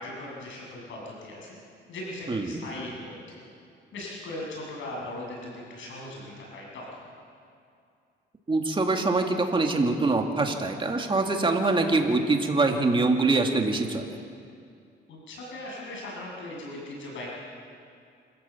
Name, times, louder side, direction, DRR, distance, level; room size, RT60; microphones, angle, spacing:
voice 1, 0.0-1.6 1.9-3.4 3.9-7.1 15.1-17.3, left 1 dB, 75° left, -3 dB, 8.0 m, -39 dB
voice 2, 2.3-2.6 8.5-14.1, right 3 dB, 25° right, 3 dB, 2.5 m, -24 dB
26.5 x 15.0 x 7.5 m, 2.4 s
cardioid pair, 90°, 20 cm